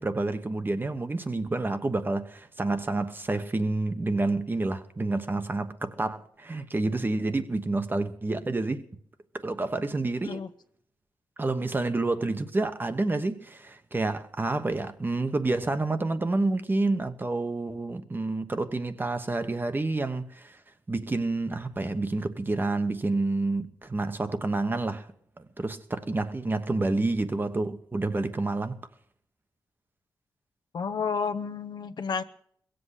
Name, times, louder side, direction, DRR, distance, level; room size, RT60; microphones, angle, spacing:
voice 1, 0.0-8.8 9.4-10.4 11.4-20.6 20.9-25.1 25.6-28.8, right 2 dB, 25° right, 1.1 m, -29 dB
voice 2, 30.7-32.2, left 5 dB, 65° left, 0.9 m, -31 dB
21.5 x 7.9 x 8.2 m
cardioid pair, 90°, 8 cm